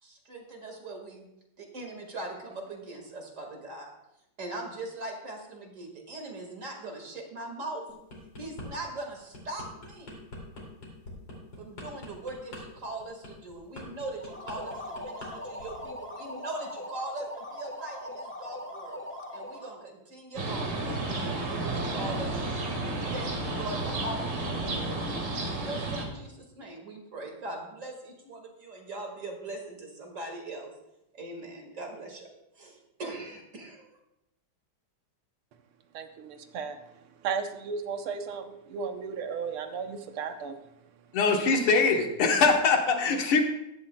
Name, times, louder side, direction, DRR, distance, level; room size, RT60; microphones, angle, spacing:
voice 1, 0.0-1.3 1.6-3.9 4.4-7.8 8.4-10.2 11.6-19.0 19.3-22.7 23.1-30.7 31.1-32.3 32.6-34.0, right 2 dB, 40° right, 2 dB, 2.0 m, -41 dB
sound 1, 7.9-8.7 9.1-15.3 15.6-15.9, left 1 dB, 60° left, 3.2 m, -43 dB
sound 2, 14.1-19.8, left 1 dB, 10° left, 0.5 m, -40 dB
sound 3, 20.4-26.1, right 2 dB, 55° right, 2.4 m, -32 dB
voice 2, 35.9-40.6, right 5 dB, 85° right, 7 dB, 1.8 m, -35 dB
voice 3, 41.1-43.4, left 4 dB, 85° left, 3 dB, 2.1 m, -23 dB
15.0 x 11.5 x 2.2 m, 0.87 s
omnidirectional pair, 2.3 m